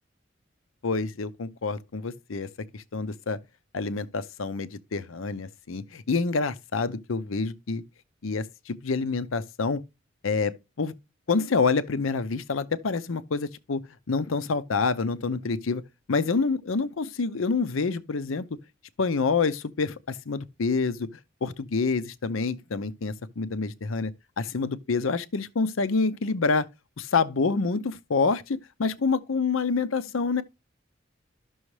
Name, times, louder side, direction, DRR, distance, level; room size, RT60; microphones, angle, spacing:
voice 1, 0.8-2.5 2.7-3.4 3.7-7.8 8.2-9.8 10.2-10.9 11.3-13.8 14.1-15.8 16.1-18.5 19.0-21.1 21.4-24.1 24.4-26.7 27.0-30.4, left 4 dB, 90° left, 0.7 m, -27 dB
12.5 x 6.2 x 3.2 m
head